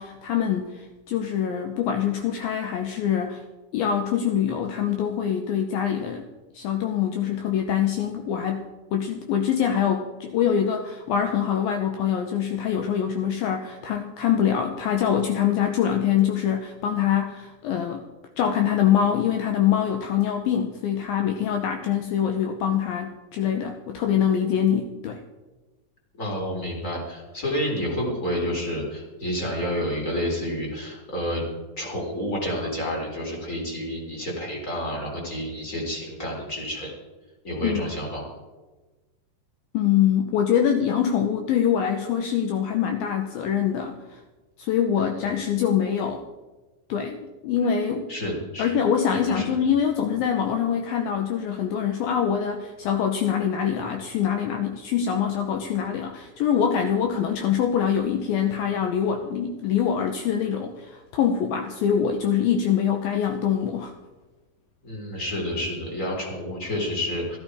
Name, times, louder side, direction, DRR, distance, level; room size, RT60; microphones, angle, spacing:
voice 1, 0.0-3.4 3.7-6.3 6.5-18.0 18.4-25.2 37.6-37.9 39.7-44.2 44.6-46.2 46.9-48.1 48.6-63.9, left 8 dB, 75° left, 5 dB, 2.5 m, -24 dB
voice 2, 26.2-31.4 31.8-36.9 37.4-38.3 45.0-45.1 48.1-48.7 49.1-49.5 64.8-67.4, equal, 20° left, -2 dB, 4.1 m, -29 dB
15.5 x 14.0 x 4.9 m, 1.2 s
omnidirectional pair, 4.4 m